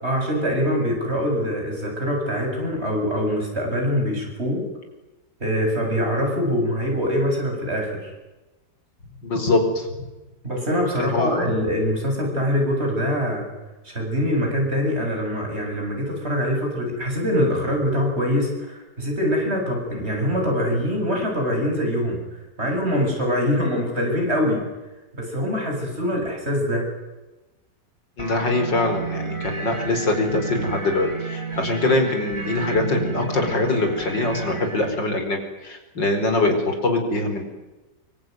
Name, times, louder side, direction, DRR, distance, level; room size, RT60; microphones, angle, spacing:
voice 1, 0.0-4.6 5.4-8.1 10.4-13.5 13.8-22.2 22.6-24.6 25.1-26.9, equal, 35° right, 1 dB, 7.9 m, -24 dB
voice 2, 9.2-9.9 11.0-11.6 28.2-37.4, left 2 dB, 90° left, 5 dB, 5.4 m, -23 dB
sound 1, 28.2-34.8, right 4 dB, 15° right, 4.2 m, -32 dB
26.0 x 24.0 x 9.5 m, 1.1 s
omnidirectional pair, 1.9 m